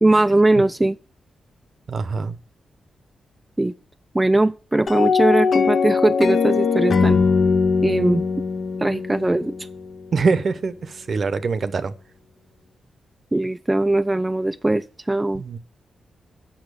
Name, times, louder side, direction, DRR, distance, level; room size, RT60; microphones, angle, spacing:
voice 1, 0.0-1.0 3.6-3.7 4.1-7.2 7.8-8.2 8.8-9.5 13.3-15.4, right 2 dB, 15° right, 0.3 m, -20 dB
voice 2, 1.9-2.3 10.1-11.9 15.3-15.6, right 4 dB, 55° right, 0.8 m, -23 dB
sound 1, 4.9-10.0, left 5 dB, 50° left, 0.7 m, -20 dB
8.4 x 5.9 x 6.3 m
cardioid pair, 85°, 0 cm